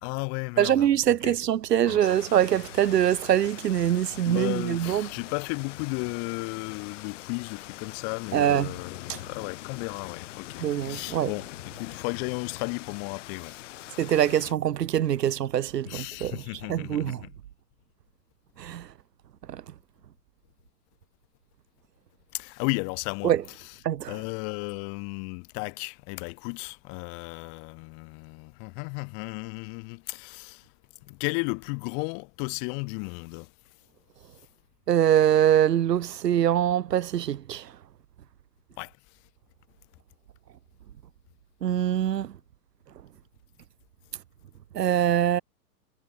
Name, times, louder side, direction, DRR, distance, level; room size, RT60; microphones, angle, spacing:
voice 1, 0.0-0.9 1.2-1.3 1.9-2.0 4.2-14.0 15.8-17.2 22.3-23.3 24.1-30.6 31.1-33.5 38.8-38.9, left 40 dB or more, 30° left, 3.2 m, -34 dB
voice 2, 0.6-5.1 8.3-8.7 9.1-9.2 10.6-11.3 14.0-16.4 16.7-17.2 18.6-18.9 19.5-19.6 23.2-23.4 23.8-24.2 34.9-37.7 41.6-42.3 44.7-45.4, right 10 dB, 80° right, 1.9 m, -24 dB
sound 1, 2.0-14.5, left 15 dB, 50° left, 3.3 m, -43 dB
hypercardioid pair, 160°, 48 cm